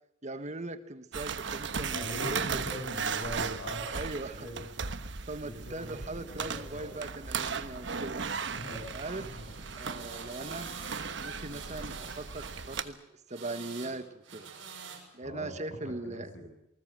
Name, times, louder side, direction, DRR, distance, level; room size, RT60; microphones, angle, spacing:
voice 1, 0.2-2.1 2.3-2.6 3.9-4.5 5.3-8.2 8.9-9.3 9.8-10.7 11.2-13.0 13.3-14.5 15.1-16.3, right 2 dB, 40° right, 10 dB, 1.5 m, -40 dB
sound 1, 1.1-12.8, right 5 dB, 65° right, 1.1 m, -37 dB
voice 2, 1.9-3.9 4.3-4.6 5.4-7.0 8.5-9.4 15.2-16.5, equal, 75° left, 4 dB, 7.5 m, -41 dB
sound 2, 8.6-12.9 13.3-14.0 14.2-15.0, right 5 dB, 90° right, 6.4 m, -46 dB
27.5 x 20.0 x 7.6 m, 0.84 s
head